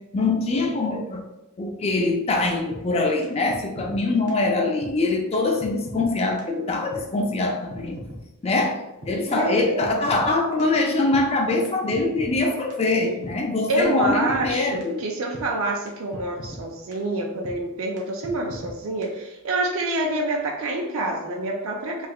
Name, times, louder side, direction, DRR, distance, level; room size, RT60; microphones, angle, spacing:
voice 1, 0.1-1.2 1.6-8.0 8.4-8.8 9.1-15.0, left 2 dB, 30° left, 2 dB, 0.4 m, -23 dB
sound 1, 2.7-2.8 3.2-3.3 3.5-4.0 4.3-4.4 4.8-4.9 5.3-5.4 5.6-6.1 6.4-6.5 6.9-7.0 7.4-7.5 7.7-8.2 8.5-8.6 9.0-9.1 9.5-10.3 10.6-10.7 11.1-11.2 11.7-11.8 11.9-12.4 12.7-12.8 13.2-13.3 13.8-13.9 14.0-14.5 14.8-14.9 15.3-15.5 15.9-16.0 16.1-16.6 16.9-17.0 17.4-17.6 18.0-18.1 18.2-18.7 19.0-19.1, equal, 85° right, 0.9 m, -38 dB
voice 2, 9.3-10.0 13.7-22.1, right 2 dB, 60° right, 1 dB, 0.4 m, -27 dB
3.2 x 2.7 x 2.3 m, 0.94 s
head